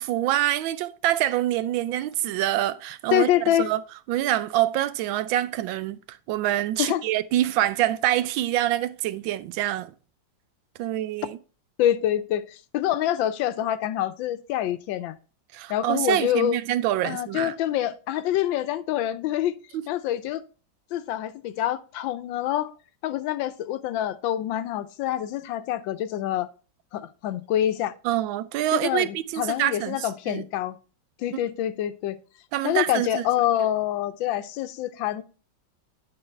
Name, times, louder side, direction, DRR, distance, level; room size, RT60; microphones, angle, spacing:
voice 1, 0.0-3.3 3.6-3.8 4.1-9.9 10.8-11.4 15.5-17.5 19.7-19.8 28.0-30.4 32.5-33.2, right 13 dB, 85° right, 1.4 m, -26 dB
voice 2, 3.1-3.7 6.8-7.0 11.8-15.1 15.7-16.6 17.0-19.5 19.9-20.4 20.9-22.7 23.0-26.5 26.9-27.9 28.7-30.8 31.2-32.2 32.6-35.2, left 12 dB, 85° left, 1.4 m, -26 dB
9.8 x 3.9 x 4.4 m
omnidirectional pair, 2.1 m